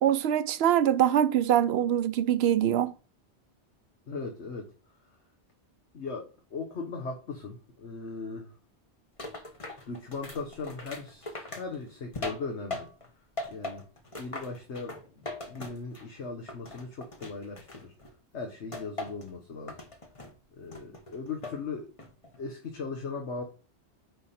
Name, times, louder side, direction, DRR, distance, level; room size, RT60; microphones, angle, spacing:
voice 1, 0.0-2.9, right 10 dB, 70° right, 0.8 m, -24 dB
voice 2, 4.1-4.7 5.9-8.5 9.9-12.9 13.5-13.8 14.2-14.9 15.5-17.9 18.3-19.8 20.5-21.9 22.4-23.4, left 4 dB, 85° left, 1.4 m, -38 dB
sound 1, 9.2-13.1 13.4-16.2 16.5-18.1 18.7-19.3 19.7-20.3 20.7-21.6 22.0-22.4, left 2 dB, 30° left, 1.2 m, -40 dB
9.3 x 3.5 x 4.2 m
omnidirectional pair, 1.1 m